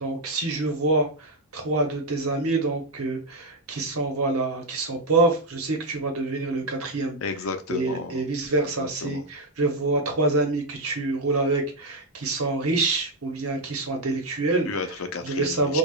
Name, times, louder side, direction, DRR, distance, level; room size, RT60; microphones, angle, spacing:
voice 1, 0.0-7.2 7.7-14.7 15.2-15.8, right 2 dB, 80° right, 1.0 m, -26 dB
voice 2, 7.2-8.3 8.8-9.2 14.7-15.8, left 4 dB, 70° left, 0.5 m, -32 dB
4.8 x 2.3 x 2.4 m
head